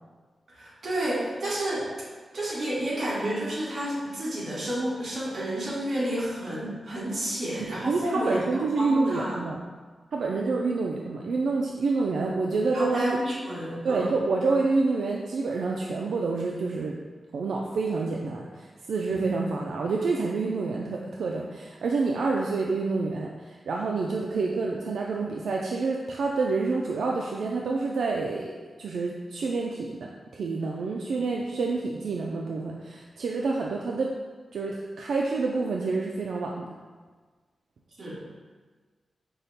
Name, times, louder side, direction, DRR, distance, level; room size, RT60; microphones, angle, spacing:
voice 1, 0.5-1.8 2.3-9.4 12.7-14.2 38.0-38.2, right 1 dB, 55° right, -7 dB, 1.4 m, -30 dB
voice 2, 7.9-9.6 10.1-13.1 13.8-17.0 17.3-28.5 28.8-34.1 34.5-36.7, right 3 dB, 90° right, -1 dB, 0.3 m, -28 dB
5.4 x 2.1 x 4.0 m, 1.4 s
wide cardioid pair, 150°, 0 cm